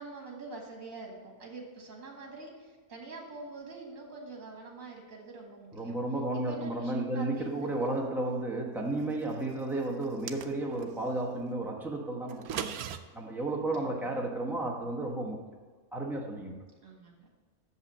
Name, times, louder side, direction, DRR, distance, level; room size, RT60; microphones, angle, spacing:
voice 1, 0.0-5.9 6.5-7.7 13.7-14.3 16.8-17.3, right 3 dB, 65° right, 0 dB, 2.1 m, -45 dB
voice 2, 5.7-12.7 13.1-15.4 15.9-16.6, right 2 dB, ahead, -2 dB, 0.9 m, -33 dB
sound 1, 10.0-10.9 12.3-13.0, right 9 dB, 80° right, 1.0 m, -38 dB
6.9 x 5.5 x 7.2 m, 1.4 s
omnidirectional pair, 1.5 m